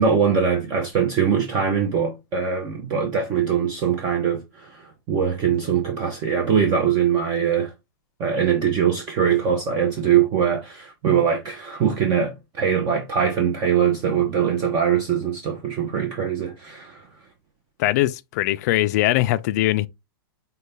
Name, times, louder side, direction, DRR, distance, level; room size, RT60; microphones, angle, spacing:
voice 1, 0.0-7.7 8.2-17.1, right 7 dB, 30° right, 0.7 m, -22 dB
voice 2, 17.8-19.9, left 16 dB, 45° left, 0.3 m, -21 dB
5.3 x 2.3 x 3.3 m
hypercardioid pair, 150°, 12 cm